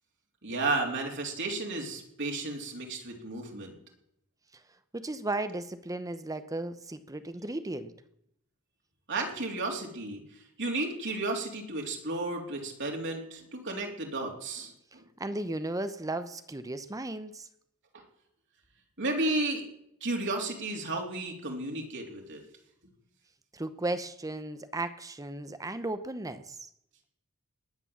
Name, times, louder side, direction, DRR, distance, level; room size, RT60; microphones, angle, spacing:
voice 1, 0.4-3.7 9.1-10.2 10.6-15.0 19.0-19.6 20.0-22.4, right 2 dB, 60° right, 1 dB, 3.5 m, -33 dB
voice 2, 4.9-7.9 15.2-17.5 23.5-26.6, right 2 dB, 15° right, 11 dB, 0.8 m, -35 dB
19.5 x 9.9 x 7.3 m, 0.76 s
head